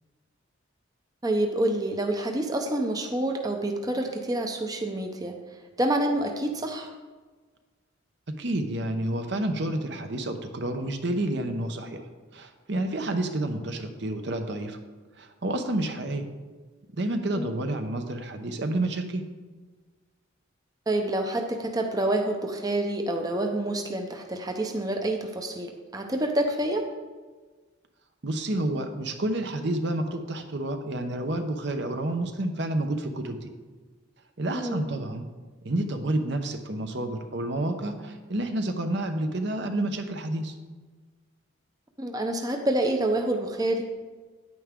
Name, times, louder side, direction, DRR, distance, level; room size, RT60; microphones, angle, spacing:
voice 1, 1.2-5.3 5.8-6.9 17.3-17.5 20.9-26.9 34.5-34.8 42.0-43.8, right 1 dB, 20° right, 3 dB, 0.6 m, -27 dB
voice 2, 8.3-12.0 12.3-14.8 15.2-16.2 17.0-19.2 28.2-33.5 34.4-35.3 35.6-40.6, right 1 dB, 60° right, 6 dB, 0.9 m, -29 dB
9.6 x 9.3 x 3.7 m, 1.3 s
head